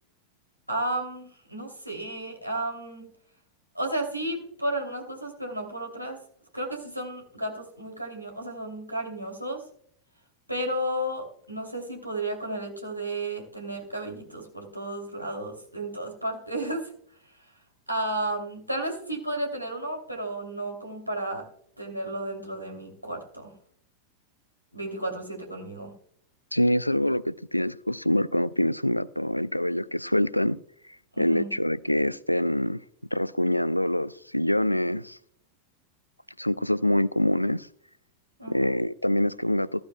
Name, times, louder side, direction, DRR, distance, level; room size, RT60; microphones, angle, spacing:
voice 1, 0.7-3.1 3.7-6.2 6.5-9.6 10.5-16.9 17.9-21.4 21.8-23.5 24.7-25.9 31.1-31.5 38.4-38.8, right 1 dB, 90° right, 3.0 m, -33 dB
voice 2, 26.5-30.6 31.2-32.8 33.1-35.2 36.4-37.7 38.5-39.9, left 1 dB, 90° left, 0.4 m, -25 dB
15.5 x 13.5 x 2.3 m
figure-of-eight pair, 90°, 0 cm